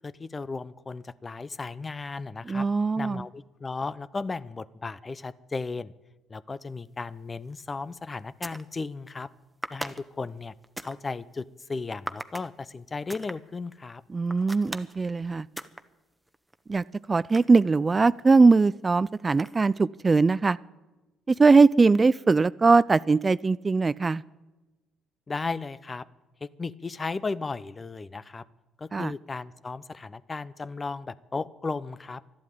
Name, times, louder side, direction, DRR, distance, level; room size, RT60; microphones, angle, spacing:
voice 1, 0.0-2.7 3.0-5.9 6.3-9.3 9.7-10.5 10.8-14.0 25.3-26.1 26.4-28.4 28.8-32.2, left 4 dB, 30° left, 18 dB, 0.7 m, -35 dB
voice 2, 2.5-3.2 14.1-15.5 16.7-20.6 21.3-24.2 28.9-29.1, right 4 dB, 30° right, 19 dB, 0.4 m, -21 dB
sound 1, 7.5-7.7 8.2-8.7 9.6-11.0 12.1-12.5 13.1-13.4 14.3-15.0 15.6-15.8 16.3-18.0 19.3-19.8, right 1 dB, 10° right, 1.1 m, -39 dB
12.5 x 11.5 x 9.3 m, 1.1 s
hypercardioid pair, 50°, 0 cm